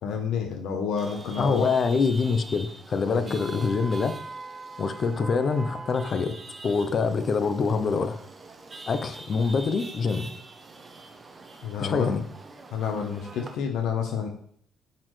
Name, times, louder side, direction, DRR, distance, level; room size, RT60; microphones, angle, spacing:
voice 1, 0.0-1.7 3.1-3.6 11.6-12.2 12.7-14.3, left 6 dB, 75° left, 2 dB, 0.9 m, -29 dB
Chatter / Vehicle horn car horn honking / Traffic noise roadway noise, 1.0-13.6, right 3 dB, 25° right, 0.7 m, -43 dB
voice 2, 1.4-4.1 4.8-6.3 6.6-8.2 8.9-10.3 11.8-12.2, left 4 dB, 40° left, 10 dB, 0.6 m, -25 dB
10.5 x 4.2 x 3.2 m, 0.62 s
cardioid pair, 145°, 0 cm